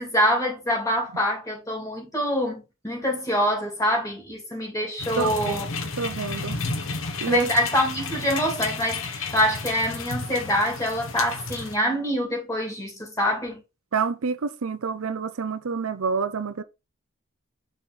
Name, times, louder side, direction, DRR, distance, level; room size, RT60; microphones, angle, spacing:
voice 1, 0.0-5.6 7.3-13.6, equal, 15° left, 2.7 m, -25 dB
sound 1, 5.0-11.7, left 4 dB, 70° left, 1.1 m, -32 dB
voice 2, 5.1-5.6 6.0-6.6 7.2-7.4 13.9-16.6, right 5 dB, 85° right, 0.6 m, -28 dB
6.3 x 4.3 x 3.7 m
head